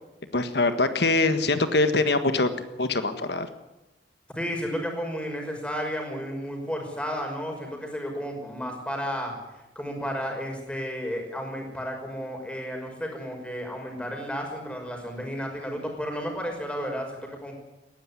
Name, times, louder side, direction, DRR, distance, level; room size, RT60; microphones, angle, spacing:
voice 1, 0.3-2.5 2.8-3.5, left 2 dB, 65° left, 9 dB, 1.5 m, -23 dB
voice 2, 4.3-9.3 9.8-17.5, equal, 5° left, 2 dB, 5.6 m, -32 dB
19.5 x 15.5 x 10.0 m, 0.98 s
head